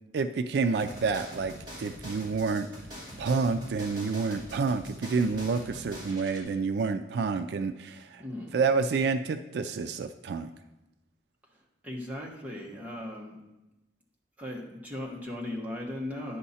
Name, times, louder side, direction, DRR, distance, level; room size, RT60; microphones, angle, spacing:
voice 1, 0.1-1.5 1.8-2.7 3.2-8.2 8.5-10.5, right 4 dB, 65° right, 9 dB, 0.3 m, -28 dB
sound 1, 0.8-6.4, equal, 25° right, 3.0 m, -44 dB
voice 2, 8.2-8.6 11.8-13.4 14.4-16.4, left 1 dB, 10° right, -3 dB, 1.2 m, -37 dB
10.0 x 5.4 x 4.2 m, 0.99 s
head